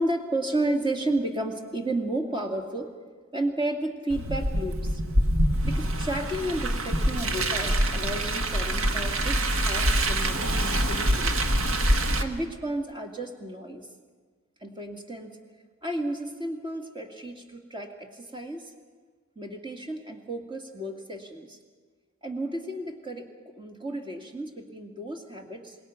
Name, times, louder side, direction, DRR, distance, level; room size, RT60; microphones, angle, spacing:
voice 1, 0.0-2.9 3.3-5.0 5.6-11.3 12.2-13.9 14.6-15.4 15.8-18.7 19.4-21.6 22.2-25.8, right 1 dB, 25° right, 2 dB, 2.3 m, -32 dB
Car, 4.1-12.2, right 1 dB, 75° right, 1.6 m, -25 dB
27.0 x 20.5 x 5.9 m, 1.5 s
head